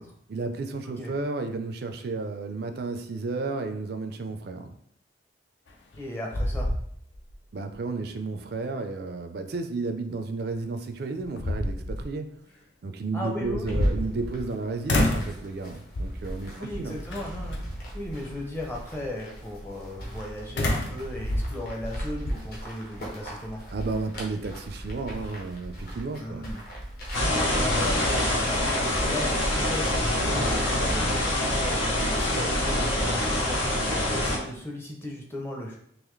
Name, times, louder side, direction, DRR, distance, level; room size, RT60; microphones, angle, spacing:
voice 1, 0.3-4.7 7.5-12.3 12.8-17.0 23.7-26.5, right 3 dB, 50° right, 7 dB, 0.4 m, -32 dB
sound 1, 5.7-6.0 6.3-7.3 7.7-7.8 10.5-10.6 11.2-12.1 13.4-14.5 14.9-15.4 15.9-16.3 17.1-17.6 20.6-22.4, left 1 dB, 65° left, 0.6 m, -28 dB
voice 2, 6.0-6.7 13.1-14.0 16.6-17.6 17.9-23.6 26.2-26.6 27.5-28.0 28.4-35.8, left 1 dB, 10° left, -2 dB, 0.6 m, -36 dB
sound 2, 13.7-30.2, equal, 50° left, 1.0 m, -40 dB
sound 3, 27.1-34.4, left 1 dB, 85° left, 0.9 m, -25 dB
3.9 x 2.9 x 3.1 m, 0.69 s
head